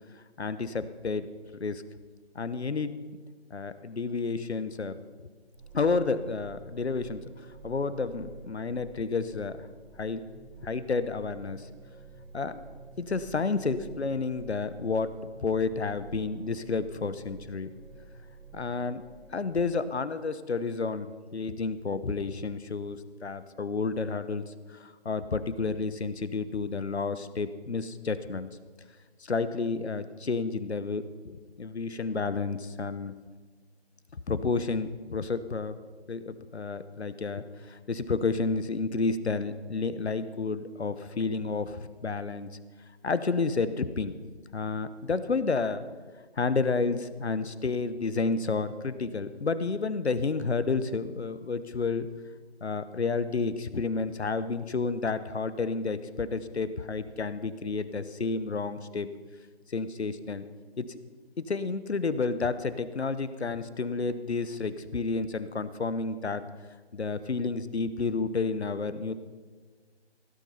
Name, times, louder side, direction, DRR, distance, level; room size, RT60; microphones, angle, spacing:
voice 1, 0.4-1.3 1.6-1.8 2.3-2.9 3.5-4.9 5.7-7.2 7.6-9.7 10.0-10.2 10.6-11.7 12.3-12.7 13.0-15.1 15.4-17.7 18.5-19.0 19.3-28.5 29.2-33.1 34.3-35.8 36.1-42.5 43.0-44.1 44.5-45.8 46.4-52.1 52.6-59.1 59.7-60.5 60.8-61.0 61.4-66.5 66.9-69.1, left 4 dB, 75° left, 13 dB, 1.0 m, -30 dB
sound 1, 5.6-19.6, right 4 dB, 60° right, 4.5 m, -49 dB
16.5 x 9.4 x 5.6 m, 1.5 s
figure-of-eight pair, 160°, 33 cm